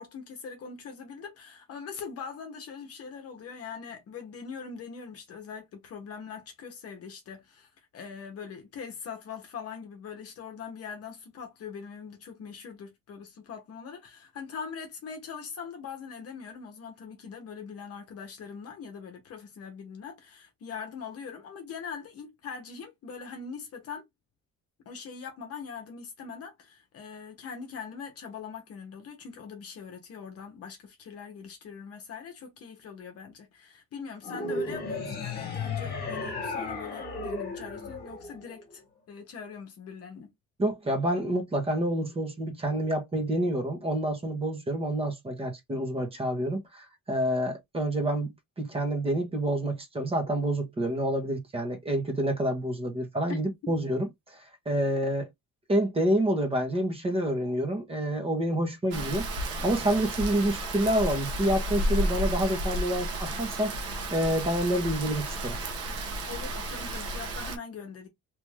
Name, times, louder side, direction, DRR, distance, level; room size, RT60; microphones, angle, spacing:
voice 1, 0.0-24.0 24.9-38.8 39.1-40.3 53.3-53.4 53.6-53.7 66.2-68.1, left 6 dB, 50° left, 0.9 m, -42 dB
sound 1, 34.2-38.7, left 3 dB, 30° left, 1.4 m, -34 dB
voice 2, 40.6-48.3 48.6-54.1 54.7-55.3 55.7-59.3 59.6-63.7 64.1-65.6, right 1 dB, 20° right, 0.9 m, -28 dB
Rain, 58.9-67.6, right 1 dB, 50° right, 0.9 m, -32 dB
3.0 x 2.5 x 3.2 m
cardioid pair, 170°, 31 cm